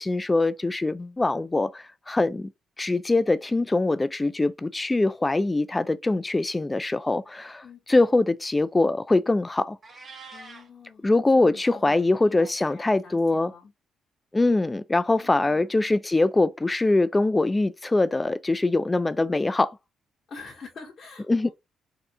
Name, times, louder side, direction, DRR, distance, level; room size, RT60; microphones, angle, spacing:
voice 1, 0.0-2.5 2.8-7.6 7.9-9.8 11.0-13.5 14.3-19.8 21.3-21.5, left 2 dB, 20° left, 0.4 m, -23 dB
Meow, 9.8-10.7, right 4 dB, 35° right, 1.4 m, -44 dB
voice 2, 10.3-13.7 15.2-15.7 20.3-21.5, left 5 dB, 50° left, 1.3 m, -45 dB
4.3 x 2.4 x 3.5 m
cardioid pair, 90°, 0 cm